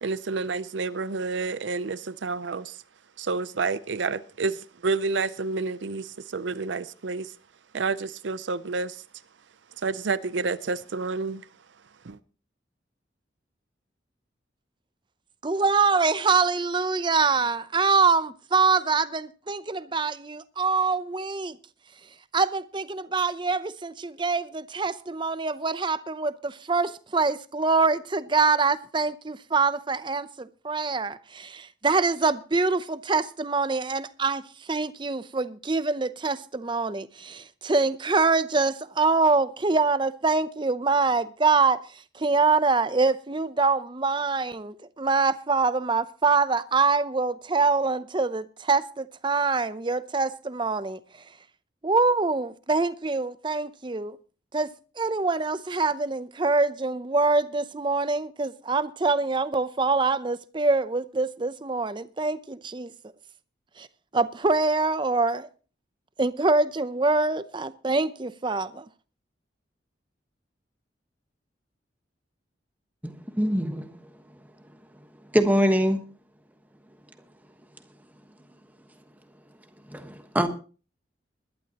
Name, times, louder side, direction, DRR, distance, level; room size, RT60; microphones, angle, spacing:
voice 1, 0.0-2.8 3.2-7.3 7.7-9.0 9.8-11.4 12.0-12.2, right 4 dB, 85° right, 0.6 m, -29 dB
voice 2, 15.4-21.6 22.3-34.4 34.7-41.8 42.1-51.0 51.8-54.2 54.5-54.7 55.0-62.9 63.8-63.9 64.1-65.5 66.2-68.8, right 4 dB, 25° right, 0.6 m, -24 dB
voice 3, 73.0-74.0 75.3-76.0 79.9-80.5, equal, 10° right, 1.3 m, -23 dB
21.5 x 11.5 x 2.9 m
head